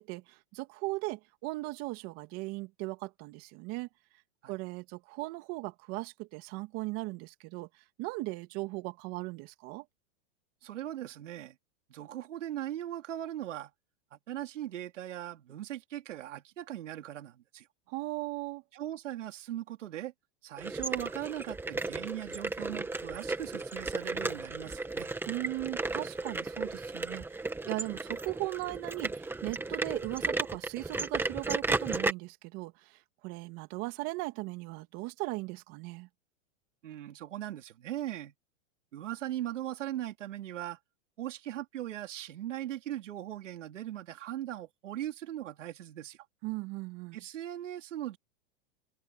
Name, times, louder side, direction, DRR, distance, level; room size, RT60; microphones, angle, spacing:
voice 1, 0.0-3.9 4.5-7.7 8.0-9.8 17.9-18.6 25.3-27.2 27.6-36.1 46.4-47.2, right 23 dB, 40° right, 2.6 m, -38 dB
voice 2, 10.6-11.6 11.9-13.7 14.1-17.7 18.7-20.1 20.4-25.1 36.8-38.3 38.9-40.8 41.2-46.2 47.1-48.2, right 12 dB, 85° right, 3.1 m, -39 dB
sound 1, 20.6-32.1, right 3 dB, 5° right, 1.8 m, -34 dB
supercardioid pair, 145°, 36 cm